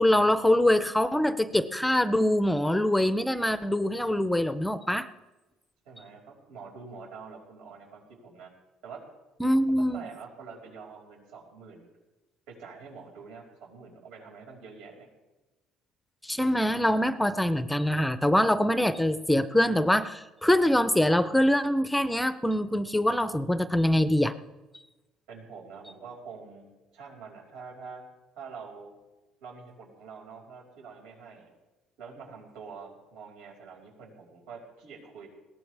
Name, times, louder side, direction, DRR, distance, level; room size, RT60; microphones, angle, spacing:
voice 1, 0.0-5.1 9.4-10.1 16.2-24.3, left 1 dB, 5° left, 12 dB, 0.5 m, -24 dB
voice 2, 5.9-6.2 6.5-8.5 8.8-9.0 9.6-11.8 12.5-15.1 25.3-28.0 28.4-28.9 29.4-31.5 32.0-35.3, right 5 dB, 85° right, 0 dB, 5.2 m, -46 dB
20.0 x 18.0 x 3.3 m, 1.1 s
cardioid pair, 150°, 0 cm